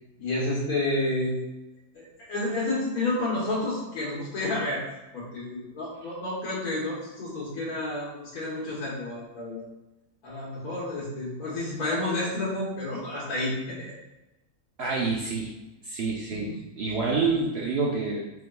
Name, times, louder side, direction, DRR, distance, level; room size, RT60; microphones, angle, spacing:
voice 1, 0.2-1.4 1.9-4.8 5.1-9.6 10.2-13.9 16.3-16.6, left 2 dB, 75° left, -7 dB, 1.4 m, -30 dB
voice 2, 14.8-15.5 15.8-18.3, right 4 dB, 70° right, -3 dB, 0.6 m, -28 dB
4.6 x 3.5 x 2.2 m, 1.0 s
omnidirectional pair, 1.6 m